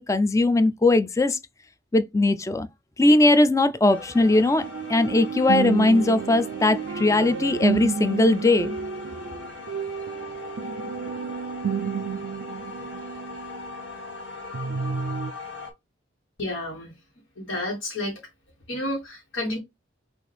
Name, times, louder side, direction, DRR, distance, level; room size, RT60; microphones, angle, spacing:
voice 1, 0.0-1.4 1.9-2.7 3.0-4.6 4.9-8.8, left 2 dB, 15° left, 0.4 m, -20 dB
sound 1, 3.9-15.7, left 4 dB, 65° left, 2.0 m, -40 dB
sound 2, 4.2-14.2 14.5-15.3, right 6 dB, 75° right, 0.4 m, -31 dB
voice 2, 16.4-16.9 17.4-18.2 18.7-19.6, left 1 dB, 80° left, 1.5 m, -30 dB
6.2 x 2.5 x 3.3 m
head